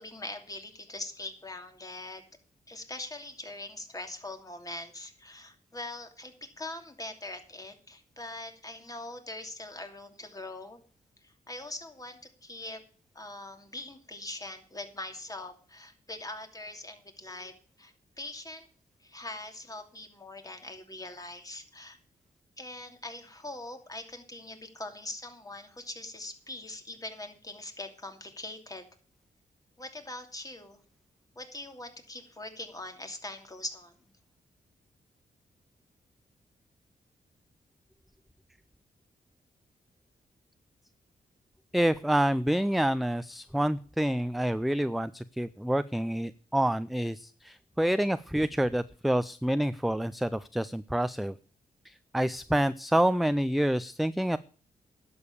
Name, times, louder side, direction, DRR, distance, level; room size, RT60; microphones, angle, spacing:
voice 1, 0.0-2.2 2.7-10.8 11.2-12.8 13.1-18.7 19.0-22.0 22.6-28.8 29.8-30.8 31.4-33.9, left 2 dB, 25° left, 6 dB, 2.7 m, -42 dB
voice 2, 41.7-51.3 51.9-54.4, right 1 dB, ahead, 15 dB, 0.5 m, -28 dB
11.5 x 7.1 x 8.4 m, 0.42 s
cardioid pair, 70°, 15 cm